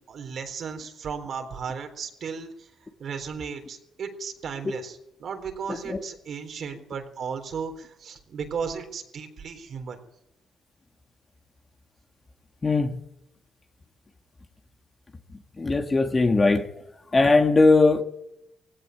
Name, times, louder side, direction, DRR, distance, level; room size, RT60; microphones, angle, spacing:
voice 1, 0.1-2.7 3.0-10.0, right 6 dB, 60° right, 3.7 m, -35 dB
voice 2, 12.6-13.0 15.6-16.7 17.1-18.0, left 3 dB, 25° left, 2.0 m, -19 dB
18.0 x 16.5 x 9.2 m
cardioid pair, 90°, 0 cm